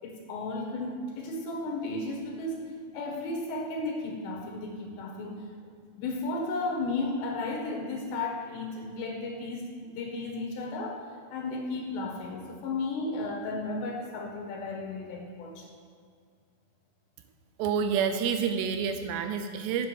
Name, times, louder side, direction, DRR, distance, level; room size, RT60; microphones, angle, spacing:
voice 1, 0.0-2.6 2.9-5.5 5.9-15.7, left 2 dB, 75° left, 0 dB, 3.8 m, -34 dB
voice 2, 17.6-19.9, right 7 dB, 80° right, 7 dB, 2.7 m, -28 dB
9.3 x 8.5 x 6.2 m, 2.1 s
omnidirectional pair, 5.1 m